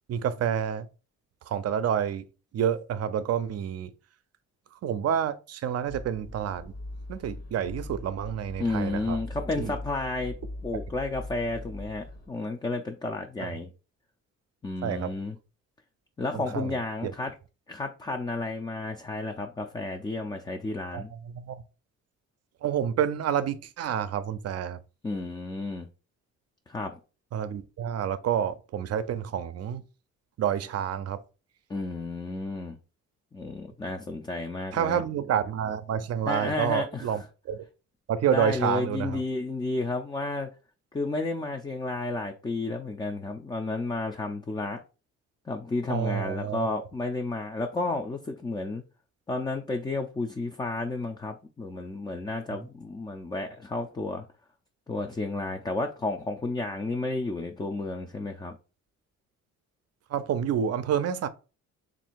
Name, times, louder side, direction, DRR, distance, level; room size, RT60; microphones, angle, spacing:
voice 1, 0.1-0.9 1.5-2.3 2.5-3.9 4.8-6.7 7.1-9.2 9.6-9.7 13.4-13.5 14.8-15.1 16.3-17.1 20.9-21.6 22.6-24.8 27.3-29.9 30.4-31.2 34.7-37.2 37.5-37.6 38.1-39.2 45.9-46.7 60.1-61.3, right 9 dB, 55° right, 0.5 m, -29 dB
sound 1, 5.9-12.3, left 1 dB, 55° left, 1.1 m, -41 dB
voice 2, 8.6-10.3 10.6-13.7 14.6-15.4 16.2-17.3 17.7-21.1 25.0-25.9 26.7-27.0 31.7-32.8 33.3-35.0 36.3-37.1 38.3-40.5 40.9-44.8 45.5-48.8 49.3-54.2 54.9-58.6, left 3 dB, 15° left, 0.4 m, -32 dB
3.3 x 2.6 x 4.5 m
cardioid pair, 90°, 30 cm